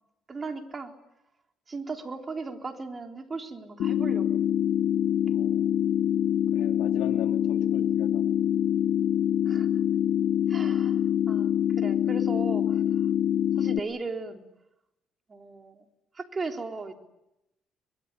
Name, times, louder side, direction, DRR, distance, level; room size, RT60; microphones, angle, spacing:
voice 1, 0.3-0.9 1.7-4.4 9.5-9.7 10.5-13.0 13.6-14.4 15.3-15.8 16.1-16.9, right 4 dB, 30° right, 4 dB, 3.8 m, -37 dB
sound 1, 3.8-13.8, left 10 dB, 70° left, 1.1 m, -25 dB
voice 2, 5.2-5.7 6.5-8.2 8.8-8.9, left 11 dB, 90° left, 4 dB, 3.6 m, -41 dB
23.5 x 23.0 x 9.9 m, 0.90 s
cardioid pair, 85°, 0 cm